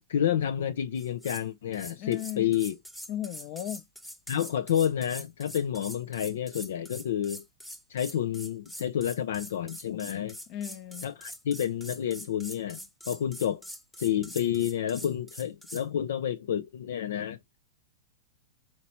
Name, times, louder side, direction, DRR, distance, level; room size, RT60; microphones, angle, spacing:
voice 1, 0.1-2.8 4.3-7.4 7.9-10.4 11.0-13.6 14.0-17.4, left 10 dB, 70° left, 0.4 m, -29 dB
sound 1, 1.0-1.5 1.7-15.9, equal, 5° left, 0.8 m, -44 dB
voice 2, 2.0-2.5 3.1-3.8 10.5-11.1, left 11 dB, 45° left, 0.8 m, -36 dB
4.3 x 2.9 x 4.2 m
hypercardioid pair, 105°, 0 cm